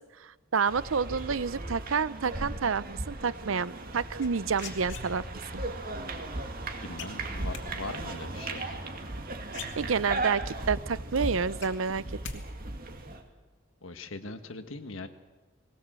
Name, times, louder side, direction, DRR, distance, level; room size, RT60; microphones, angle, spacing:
voice 1, 0.2-5.2 9.8-12.0, right 5 dB, 85° right, 18 dB, 0.6 m, -29 dB
sound 1, 0.7-13.2, right 2 dB, 45° right, 2.2 m, -37 dB
sound 2, 4.2-5.5 7.0-7.7 9.1-9.2 9.5-10.3 10.7-10.8 11.1-12.4 12.6-13.1, left 5 dB, 65° left, 2.2 m, -42 dB
voice 2, 6.8-8.8 13.8-15.1, left 3 dB, 85° left, 8 dB, 1.6 m, -41 dB
19.5 x 19.0 x 7.6 m, 1.2 s
head